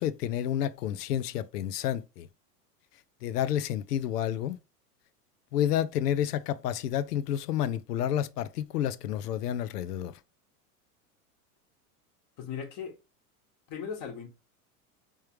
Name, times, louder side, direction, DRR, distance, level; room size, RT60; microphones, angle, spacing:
voice 1, 0.0-2.3 3.2-4.6 5.5-10.1, left 10 dB, 90° left, 0.5 m, -30 dB
voice 2, 12.4-13.0 13.7-14.3, left 7 dB, 45° left, 1.3 m, -37 dB
3.4 x 3.3 x 3.0 m
hypercardioid pair, 100°, 46 cm